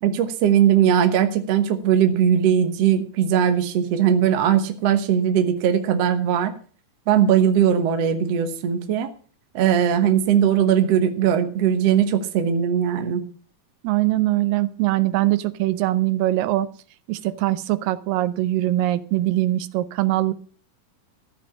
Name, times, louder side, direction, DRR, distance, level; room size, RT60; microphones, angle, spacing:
voice 1, 0.0-6.5 7.1-9.1 9.5-13.2, right 9 dB, 60° right, 7 dB, 1.9 m, -19 dB
voice 2, 13.8-16.7 17.1-20.3, right 15 dB, 85° right, 14 dB, 2.4 m, -22 dB
14.5 x 5.3 x 8.4 m, 0.43 s
omnidirectional pair, 3.9 m